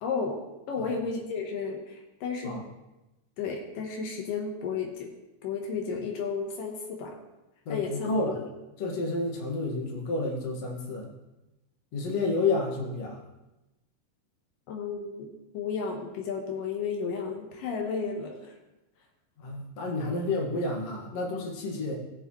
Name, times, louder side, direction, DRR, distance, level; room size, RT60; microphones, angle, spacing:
voice 1, 0.0-0.4 0.7-2.6 3.4-5.1 5.4-7.2 7.7-8.4 14.7-15.3 15.5-18.5, left 5 dB, 85° left, 1 dB, 2.8 m, -33 dB
voice 2, 7.7-8.4 8.8-11.1 11.9-13.2 19.4-22.0, left 3 dB, 55° left, -2 dB, 2.7 m, -30 dB
19.5 x 6.8 x 3.1 m, 0.99 s
omnidirectional pair, 3.8 m